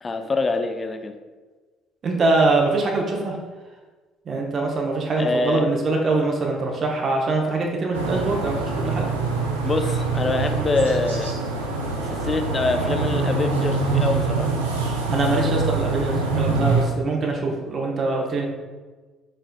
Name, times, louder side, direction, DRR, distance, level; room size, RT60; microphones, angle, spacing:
voice 1, 0.0-1.2 5.2-5.6 9.6-11.3 12.0-14.6, left 3 dB, 30° left, 7 dB, 0.4 m, -25 dB
voice 2, 2.0-3.4 4.3-9.1 15.1-18.5, right 3 dB, 45° right, 0 dB, 0.7 m, -23 dB
sound 1, 7.9-16.8, right 3 dB, 90° right, 0.5 m, -24 dB
4.4 x 3.7 x 2.2 m, 1.3 s
hypercardioid pair, 55°, 0 cm